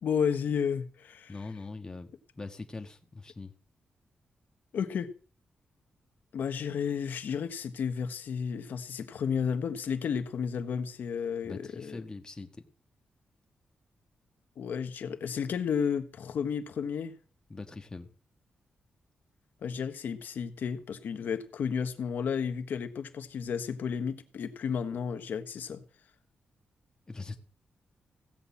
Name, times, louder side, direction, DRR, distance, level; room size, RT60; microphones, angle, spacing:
voice 1, 0.0-1.3 4.7-5.1 6.3-12.0 14.6-17.1 19.6-25.8, left 7 dB, 80° left, 1.4 m, -32 dB
voice 2, 1.3-3.5 11.4-12.6 17.5-18.1 27.1-27.4, left 3 dB, 25° left, 1.5 m, -42 dB
16.0 x 5.6 x 8.5 m
cardioid pair, 90°, 3 cm